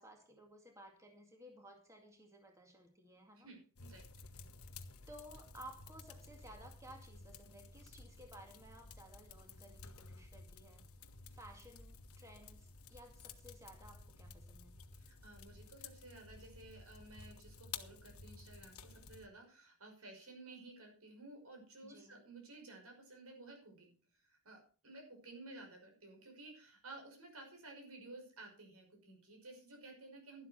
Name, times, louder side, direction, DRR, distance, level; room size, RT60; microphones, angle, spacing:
voice 1, 0.0-3.5 5.1-10.8 11.3-14.7 21.8-22.2, right 1 dB, 15° right, 3 dB, 2.2 m, -57 dB
voice 2, 3.3-4.1 15.0-30.5, right 2 dB, 90° right, 3 dB, 5.8 m, -55 dB
sound 1, 3.8-19.3, left 5 dB, 80° left, 1.3 m, -54 dB
12.0 x 11.5 x 4.3 m, 0.39 s
head